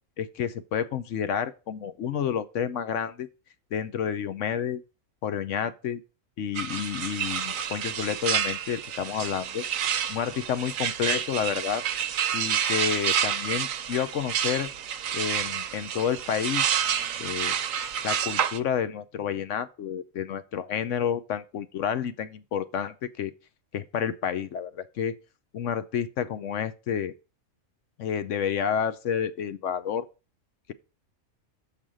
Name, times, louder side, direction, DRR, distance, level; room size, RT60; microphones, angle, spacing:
voice 1, 0.2-3.3 3.7-4.8 5.2-6.0 6.4-9.6 10.1-11.8 12.3-14.7 15.1-16.8 17.2-17.5 18.0-23.3 23.7-25.2 25.5-27.1 28.0-30.1, left 8 dB, 65° left, 1.0 m, -30 dB
sound 1, 6.6-18.6, right 9 dB, 75° right, 1.0 m, -29 dB
6.7 x 5.6 x 6.2 m
omnidirectional pair, 1.4 m